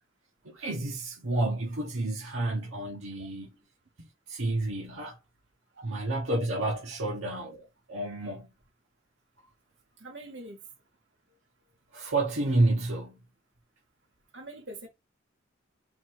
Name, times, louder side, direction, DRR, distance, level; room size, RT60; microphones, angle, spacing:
voice 1, 0.4-3.5 4.0-5.1 5.8-8.5 11.9-13.2, right 2 dB, 80° right, 1.1 m, -30 dB
voice 2, 10.0-10.6 14.3-14.9, right 1 dB, 65° right, 1.7 m, -43 dB
4.0 x 2.6 x 4.5 m
head